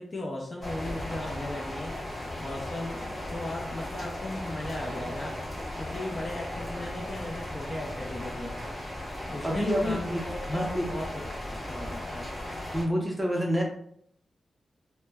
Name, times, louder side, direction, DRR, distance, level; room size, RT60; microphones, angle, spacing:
voice 1, 0.0-2.0 2.4-5.4 5.8-8.6 9.3-12.3, left 1 dB, 30° left, 0 dB, 0.5 m, -37 dB
sound 1, 0.6-12.8, left 1 dB, 15° left, 1.2 m, -37 dB
Boom, 0.8-2.6 3.5-3.7, equal, 65° left, 1.0 m, -45 dB
voice 2, 9.4-10.9 12.1-12.2 12.7-13.6, equal, 15° right, -1 dB, 0.6 m, -28 dB
2.1 x 2.1 x 3.4 m, 0.66 s
wide cardioid pair, 145°, 0 cm